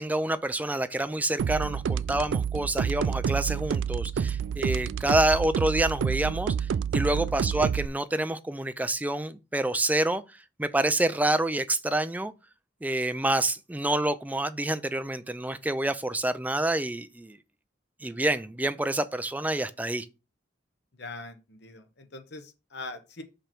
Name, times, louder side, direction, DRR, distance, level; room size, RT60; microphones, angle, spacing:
voice 1, 0.0-6.5 6.9-10.2 10.6-12.3 12.8-17.4 18.0-20.1, right 1 dB, 10° right, 0.4 m, -27 dB
sound 1, 1.4-7.9, right 7 dB, 80° right, 0.3 m, -28 dB
voice 2, 20.9-23.2, left 2 dB, 65° left, 1.1 m, -42 dB
5.9 x 5.1 x 4.4 m
head